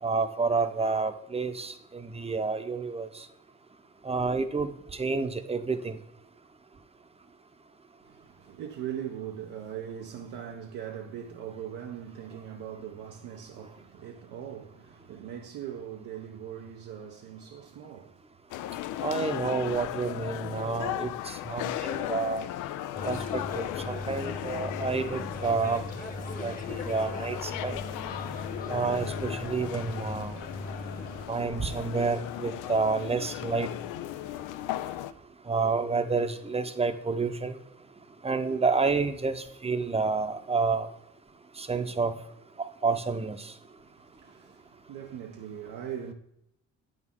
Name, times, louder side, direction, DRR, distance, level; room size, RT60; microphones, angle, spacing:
voice 1, 0.0-3.3 4.0-6.0 19.0-22.4 23.0-25.8 26.4-27.8 28.7-30.4 31.3-33.7 35.5-37.6 38.2-40.9 41.6-42.2 42.6-43.5, right 4 dB, 20° right, 0.7 m, -29 dB
voice 2, 8.0-18.2 21.5-21.6 43.8-46.1, right 9 dB, 85° right, 0.7 m, -40 dB
sound 1, 18.5-35.1, left 13 dB, 90° left, 0.5 m, -37 dB
sound 2, 22.9-31.2, left 2 dB, 30° left, 1.2 m, -38 dB
8.2 x 6.4 x 3.6 m
cardioid pair, 90°, 30 cm